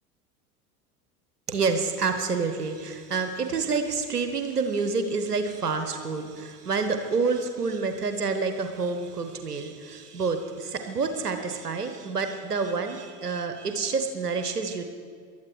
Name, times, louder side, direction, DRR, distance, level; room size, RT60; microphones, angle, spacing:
voice 1, 1.5-14.8, right 4 dB, 90° right, 7 dB, 1.1 m, -28 dB
19.0 x 12.0 x 4.7 m, 2.2 s
figure-of-eight pair, 75°, 45 cm